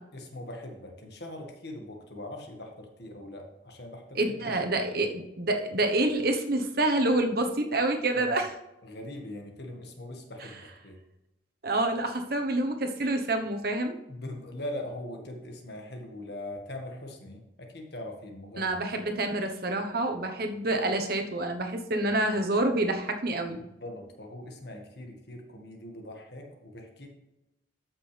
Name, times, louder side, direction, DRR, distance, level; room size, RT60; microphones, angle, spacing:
voice 1, 0.1-4.6 4.9-5.1 8.1-8.4 8.8-11.0 14.1-18.8 23.6-27.1, left 1 dB, 55° left, 2 dB, 1.7 m, -41 dB
voice 2, 4.1-8.5 11.6-14.0 18.6-23.6, right 2 dB, 50° right, 5 dB, 1.1 m, -27 dB
13.5 x 6.1 x 3.4 m, 0.95 s
head